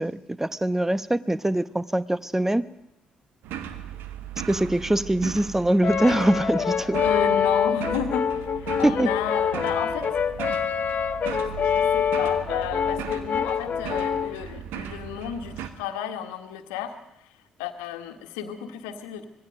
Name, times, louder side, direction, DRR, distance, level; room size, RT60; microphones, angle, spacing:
voice 1, 0.0-2.6 4.5-7.0 8.8-9.1, right 1 dB, 10° right, 16 dB, 1.0 m, -23 dB
sound 1, 3.4-15.7, right 9 dB, 65° right, 1.4 m, -38 dB
Brass instrument, 5.8-14.4, left 7 dB, 45° left, 1.0 m, -25 dB
voice 2, 6.8-10.2 11.3-19.2, left 8 dB, 70° left, 7 dB, 1.6 m, -33 dB
25.5 x 20.0 x 5.3 m, 0.83 s
figure-of-eight pair, 45°, 4 cm